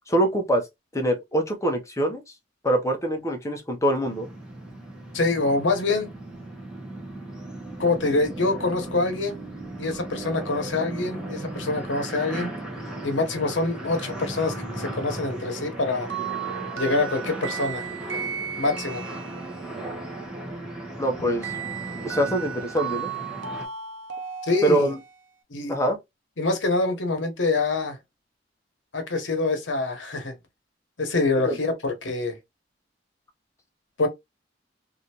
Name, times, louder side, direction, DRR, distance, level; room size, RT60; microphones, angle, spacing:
voice 1, 0.1-0.7 0.9-2.2 2.6-4.3 21.0-21.5 22.0-23.1 24.6-25.0 25.7-26.0 31.5-31.6, right 1 dB, 15° left, 0.9 m, -24 dB
sound 1, 4.0-23.7, right 1 dB, 5° right, 1.2 m, -36 dB
voice 2, 5.1-6.1 7.8-9.4 9.8-12.5 13.0-16.1 16.8-17.9 18.1-18.2 18.6-19.0 24.4-24.9 25.5-25.8 26.4-28.0 28.9-30.4 31.0-32.4 34.0-34.1, left 3 dB, 75° left, 1.0 m, -25 dB
sound 2, 16.1-19.8 21.4-25.2, right 8 dB, 85° right, 0.8 m, -35 dB
3.2 x 2.6 x 2.8 m
head